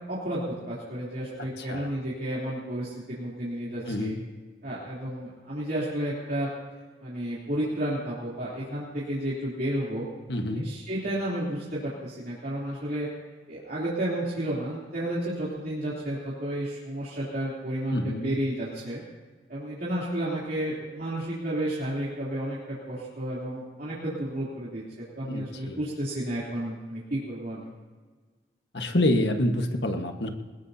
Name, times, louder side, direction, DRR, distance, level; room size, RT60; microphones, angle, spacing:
voice 1, 0.1-4.1 4.6-6.5 7.0-10.1 10.5-13.1 13.5-19.0 19.5-27.7, right 1 dB, 55° right, -8 dB, 3.3 m, -32 dB
voice 2, 1.6-1.9 3.9-4.2 10.3-10.6 17.9-18.3 25.3-25.8 28.7-30.3, left 1 dB, 70° left, 5 dB, 1.4 m, -27 dB
21.0 x 20.5 x 2.8 m, 1.4 s
head